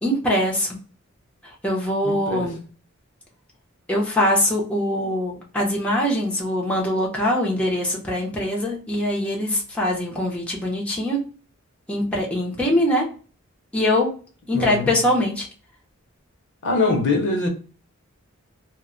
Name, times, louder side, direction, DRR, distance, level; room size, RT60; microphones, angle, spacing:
voice 1, 0.0-0.8 1.4-2.6 3.9-11.2 11.9-13.1 13.7-14.1 14.5-15.5, left 1 dB, 5° left, 0.6 m, -23 dB
voice 2, 2.0-2.5 14.5-14.9 16.6-17.5, left 3 dB, 60° left, 0.7 m, -23 dB
2.1 x 2.0 x 3.6 m
head